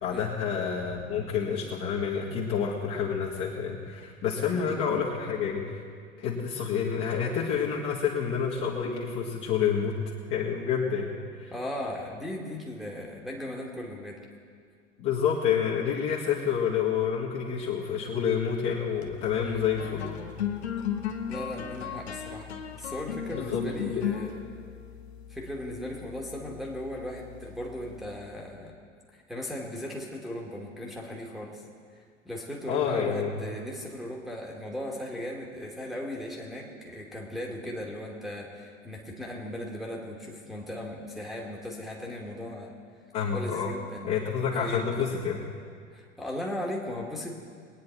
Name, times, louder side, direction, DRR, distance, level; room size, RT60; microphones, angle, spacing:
voice 1, 0.0-5.6 6.2-10.0 10.3-11.5 15.0-20.1 23.3-24.2 32.7-33.4 43.1-43.7 44.0-45.4, left 7 dB, 35° left, -5 dB, 2.0 m, -28 dB
voice 2, 4.5-5.0 11.5-14.2 19.4-19.7 21.3-22.5 22.8-24.4 25.3-28.8 29.1-31.6 31.9-42.7 43.3-44.1 44.5-45.0 45.9-47.5, left 1 dB, ahead, -3 dB, 1.8 m, -37 dB
sound 1, 18.8-28.4, left 9 dB, 60° left, 1.2 m, -37 dB
22.0 x 9.5 x 4.5 m, 2.1 s
figure-of-eight pair, 85°, 37 cm